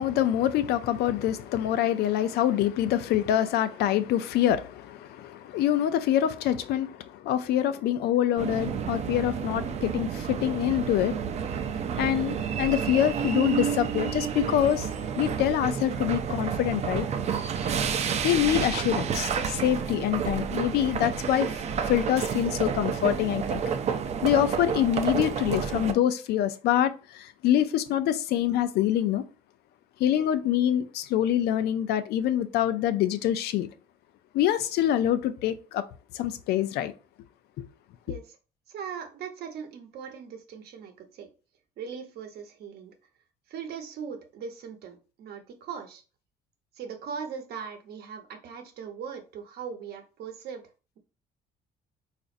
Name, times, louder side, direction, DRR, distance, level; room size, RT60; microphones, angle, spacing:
voice 1, 0.0-11.2 12.0-14.9 15.2-17.1 18.2-23.6 24.2-29.2 30.0-33.7 34.3-35.8 36.1-36.9, left 11 dB, 75° left, 0.4 m, -25 dB
sound 1, 8.4-25.9, right 7 dB, 40° right, 0.4 m, -30 dB
voice 2, 38.7-41.3 41.8-42.9 43.5-46.0 46.7-50.6, right 6 dB, 70° right, 0.9 m, -39 dB
4.0 x 2.5 x 2.5 m
cardioid pair, 110°, 17 cm